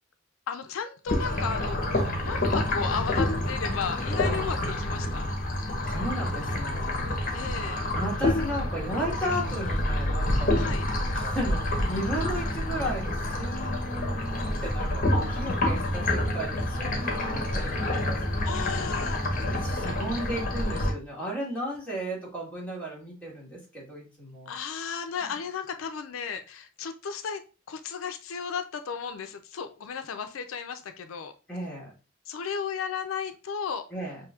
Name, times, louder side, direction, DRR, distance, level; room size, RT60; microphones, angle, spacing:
voice 1, 0.5-5.2 7.3-7.8 10.6-10.8 18.5-19.2 24.5-27.4 27.7-31.3 32.3-33.8, left 6 dB, 90° left, 9 dB, 0.4 m, -34 dB
sound 1, 1.1-20.9, left 1 dB, 45° left, 0.9 m, -28 dB
voice 2, 5.9-7.5 7.9-10.8 11.1-18.5 19.5-24.5 31.5-31.9 33.9-34.2, equal, 5° left, -5 dB, 1.5 m, -35 dB
5.7 x 2.7 x 2.3 m, 0.32 s
head